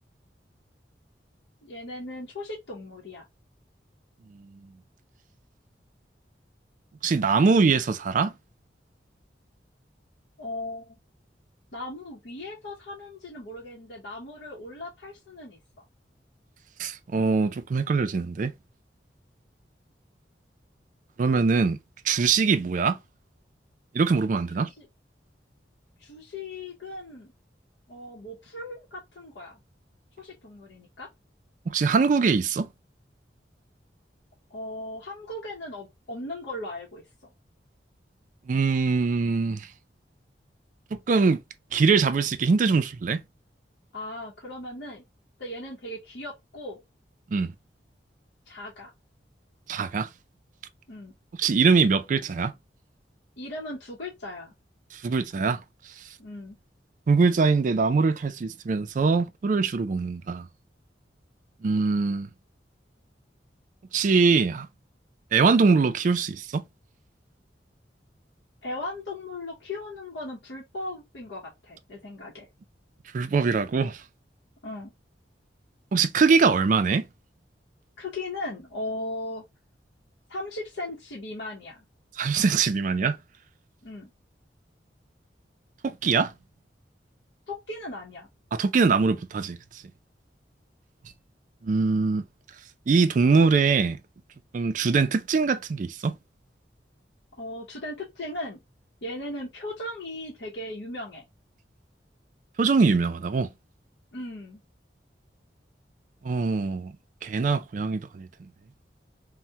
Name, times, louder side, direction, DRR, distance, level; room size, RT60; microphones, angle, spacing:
voice 1, 1.6-3.2 10.4-11.0 11.7-15.6 24.5-24.9 26.0-27.3 27.9-29.6 30.2-31.1 34.5-37.3 43.9-45.0 45.4-46.8 48.5-48.9 50.9-51.1 53.4-54.5 56.2-56.6 68.6-72.5 74.6-74.9 78.0-79.4 80.3-81.8 83.8-84.1 87.5-88.3 97.4-98.6 99.0-101.2 104.1-104.6, left 1 dB, 80° left, 0.8 m, -37 dB
voice 2, 7.0-8.3 16.8-18.5 21.2-21.8 22.0-23.0 23.9-24.7 31.7-32.7 38.5-39.7 40.9-41.4 41.7-43.2 47.3-47.5 49.7-50.1 51.4-52.5 55.0-55.6 57.1-60.5 61.6-62.3 63.9-64.7 65.3-66.6 73.1-74.0 75.9-77.0 82.2-83.2 85.8-86.3 88.5-89.6 91.6-92.2 92.9-94.0 94.5-96.1 102.6-103.5 106.2-106.9 107.2-108.3, right 4 dB, 45° right, 0.3 m, -22 dB
2.7 x 2.1 x 3.3 m
head